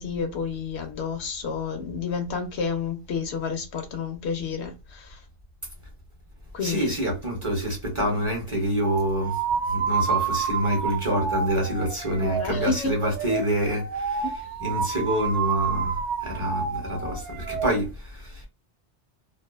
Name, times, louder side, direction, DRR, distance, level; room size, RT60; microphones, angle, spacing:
voice 1, 0.0-5.2 6.5-6.9 12.2-12.9 14.2-14.3, left 5 dB, 75° left, 0.9 m, -30 dB
voice 2, 6.6-14.3 14.6-18.5, equal, 30° right, 0.8 m, -27 dB
sound 1, 8.8-17.7, right 6 dB, 85° right, 0.9 m, -29 dB
2.6 x 2.3 x 2.3 m
omnidirectional pair, 1.2 m